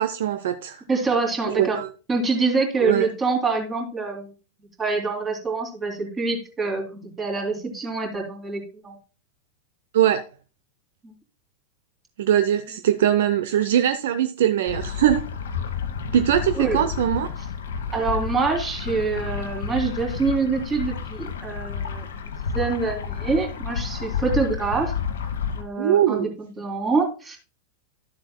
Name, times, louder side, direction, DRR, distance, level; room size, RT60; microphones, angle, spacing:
voice 1, 0.0-0.8 1.4-1.9 2.8-3.1 9.9-10.2 12.2-15.2 16.1-17.3 25.8-26.3, right 10 dB, 55° right, 0.5 m, -21 dB
voice 2, 0.9-1.8 2.1-4.3 4.8-9.0 11.0-11.1 16.0-16.1 16.5-16.8 17.9-24.9 25.5-27.4, right 4 dB, 20° right, 2.7 m, -26 dB
sound 1, 14.7-25.6, left 6 dB, 65° left, 1.1 m, -30 dB
12.5 x 7.4 x 2.2 m
figure-of-eight pair, 90°, 0 cm